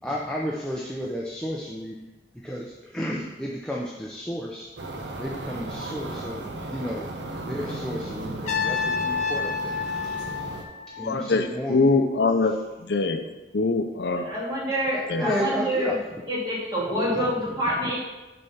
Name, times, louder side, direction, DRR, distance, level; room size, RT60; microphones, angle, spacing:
voice 1, 0.0-2.0 2.3-4.7 5.2-7.1 7.4-9.8 11.0-12.0 15.1-16.0 17.1-17.3 17.8-17.9, equal, 5° left, -3 dB, 0.6 m, -32 dB
sound 1, 4.8-10.6, right 2 dB, 85° right, 1.0 m, -35 dB
Trumpet, 8.4-11.4, left 5 dB, 40° left, 1.2 m, -29 dB
voice 2, 11.1-12.6 12.8-13.2 13.5-14.3 15.1-15.2, left 3 dB, 75° left, 7 dB, 0.5 m, -23 dB
voice 3, 14.1-16.0 16.3-18.0, equal, 20° right, -7 dB, 2.3 m, -27 dB
6.8 x 4.3 x 5.6 m, 1.1 s
head